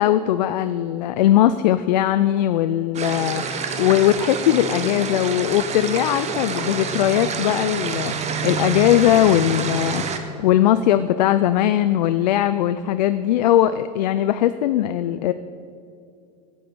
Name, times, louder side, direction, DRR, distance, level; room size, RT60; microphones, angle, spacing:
voice 1, 0.0-15.3, left 12 dB, 85° left, 12 dB, 0.5 m, -20 dB
sound 1, 2.9-10.2, right 5 dB, 30° right, 1.3 m, -27 dB
11.0 x 7.1 x 9.5 m, 2.4 s
supercardioid pair, 105°, 21 cm